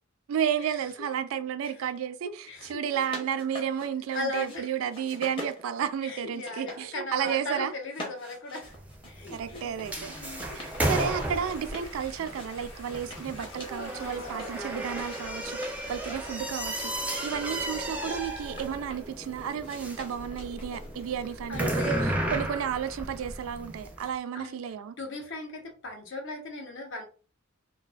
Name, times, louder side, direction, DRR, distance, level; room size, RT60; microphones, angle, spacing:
voice 1, 0.3-7.7 9.3-10.1 10.6-25.0, right 8 dB, 85° right, 0.3 m, -32 dB
voice 2, 2.2-3.1 4.1-4.7 6.0-8.7 9.1-10.5 10.8-11.0 14.0-14.4 21.5-22.1 24.3-24.6 25.0-27.0, left 2 dB, 65° left, 0.7 m, -38 dB
sound 1, 2.7-4.6 4.9-6.8 7.1-7.6 7.9-11.9 12.3-14.5 14.9-16.2 16.7-19.2 19.6-21.1, left 1 dB, 25° left, 0.8 m, -45 dB
sound 2, 8.6-24.0, right 1 dB, 5° right, 0.4 m, -34 dB
sound 3, 9.8-17.7, left 1 dB, 90° left, 1.0 m, -48 dB
2.4 x 2.3 x 2.3 m
head